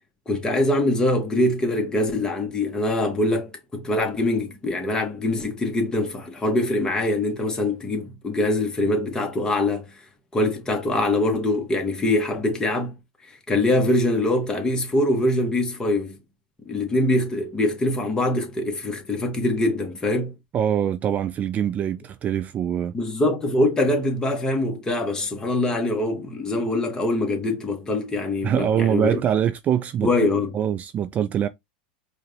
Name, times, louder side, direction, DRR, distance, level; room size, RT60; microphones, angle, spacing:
voice 1, 0.3-9.9 10.3-12.9 13.3-16.2 16.6-20.3 22.9-29.2 30.0-30.5, left 1 dB, 15° left, 1.5 m, -23 dB
voice 2, 20.5-22.9 28.4-30.1 30.5-31.5, right 9 dB, 30° right, 0.3 m, -23 dB
4.9 x 2.5 x 3.3 m
supercardioid pair, 120°, 5 cm